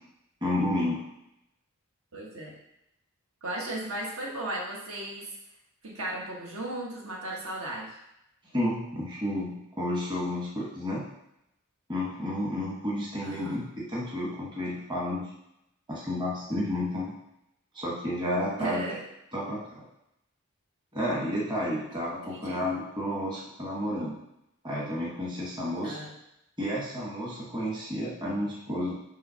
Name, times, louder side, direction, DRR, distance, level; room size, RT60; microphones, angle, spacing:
voice 1, 0.4-1.0 8.5-11.0 11.9-15.3 15.9-17.1 17.7-18.9 19.3-19.8 20.9-24.2 24.6-26.0 26.6-28.9, left 1 dB, 20° right, -5 dB, 1.2 m, -31 dB
voice 2, 2.1-2.5 3.4-5.3 5.8-8.0 13.2-13.7 18.6-19.0 22.2-22.6 25.8-26.1, right 1 dB, 70° right, -3 dB, 1.5 m, -36 dB
5.5 x 3.3 x 5.6 m, 0.82 s
head